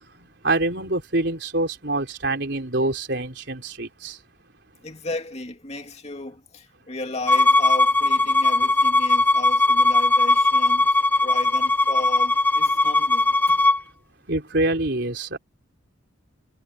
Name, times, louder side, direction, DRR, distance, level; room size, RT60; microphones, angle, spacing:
voice 1, 0.1-4.2 14.3-15.4, right 2 dB, 60° right, 4.2 m, -25 dB
voice 2, 4.8-10.9 11.2-13.7, left 2 dB, 35° left, 2.6 m, -35 dB
Bowed string instrument, 7.3-13.8, left 2 dB, 10° left, 0.9 m, -19 dB
head